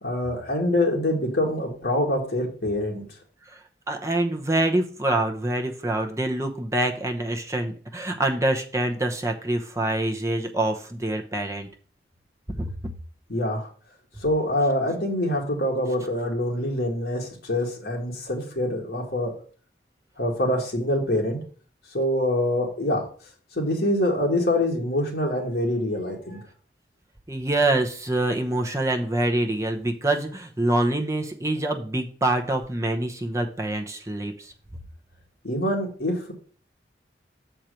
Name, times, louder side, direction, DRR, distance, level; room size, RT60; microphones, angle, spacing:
voice 1, 0.0-3.0 13.3-13.7 14.2-19.4 20.2-21.4 21.9-23.1 23.6-26.4 35.4-36.3, left 1 dB, 70° left, 0 dB, 2.2 m, -25 dB
voice 2, 3.9-11.7 12.6-12.9 27.3-34.5, right 1 dB, 15° right, 3 dB, 0.9 m, -25 dB
6.7 x 4.5 x 6.4 m, 0.41 s
head